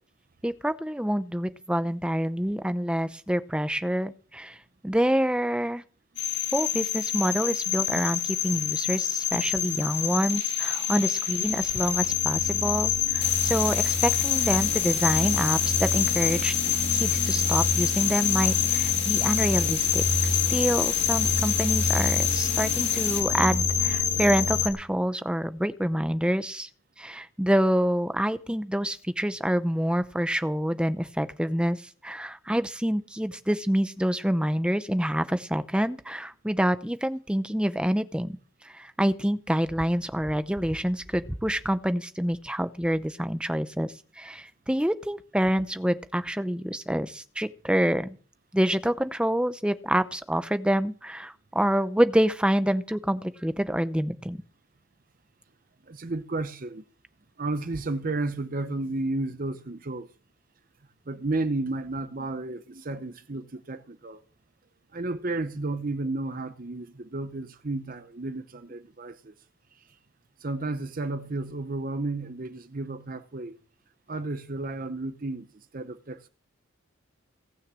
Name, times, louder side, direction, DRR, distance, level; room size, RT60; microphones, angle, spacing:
voice 1, 0.4-4.6 4.8-5.8 6.5-16.5 16.9-26.7 27.0-38.4 38.6-48.2 48.5-54.4, equal, 5° right, 0.6 m, -27 dB
sound 1, 6.2-24.7, left 7 dB, 55° left, 2.6 m, -26 dB
sound 2, 13.2-23.2, left 6 dB, 30° left, 2.0 m, -34 dB
voice 2, 55.9-56.8 57.4-60.1 61.1-64.2 64.9-69.3 69.8-69.9 70.4-73.6 74.1-76.3, right 2 dB, 40° right, 0.7 m, -32 dB
18.0 x 6.5 x 7.5 m
head